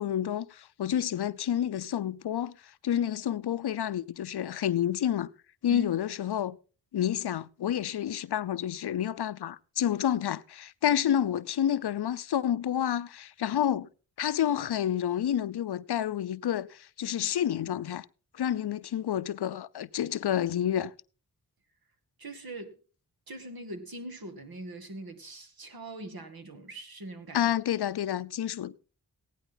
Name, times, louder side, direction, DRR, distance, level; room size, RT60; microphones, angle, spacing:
voice 1, 0.0-5.3 5.6-6.6 6.9-13.9 14.2-18.1 18.3-20.9 27.3-28.8, left 10 dB, 75° left, 0.6 m, -29 dB
voice 2, 22.2-22.8 23.3-27.5, right 1 dB, 65° right, 2.2 m, -42 dB
15.5 x 10.5 x 3.9 m
cardioid pair, 40°, 39 cm